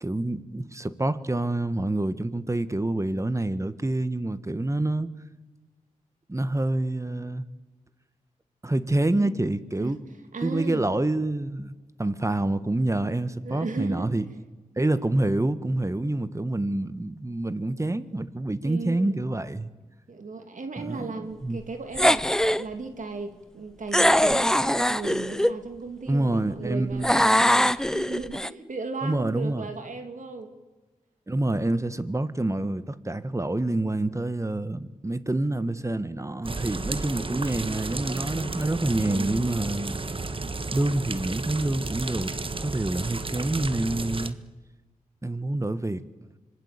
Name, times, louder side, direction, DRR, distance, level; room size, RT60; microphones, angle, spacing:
voice 1, 0.0-5.1 6.3-7.4 8.6-10.0 10.4-11.7 12.0-14.2 14.8-19.7 20.8-21.1 21.4-21.6 26.1-27.1 29.0-29.7 31.3-39.9 40.7-42.3 42.6-44.4 45.2-46.0, right 2 dB, 20° right, 1.5 m, -27 dB
voice 2, 10.3-10.8 13.4-14.1 16.0-16.1 18.6-19.2 20.1-22.2 22.6-30.6 39.0-39.4, right 3 dB, 60° right, 2.7 m, -36 dB
sound 1, 21.9-22.6 23.9-25.6 27.0-28.5, equal, 5° left, 0.7 m, -21 dB
sound 2, 36.4-44.3, right 3 dB, 40° right, 1.5 m, -33 dB
26.0 x 20.0 x 8.4 m
cardioid pair, 50°, 15 cm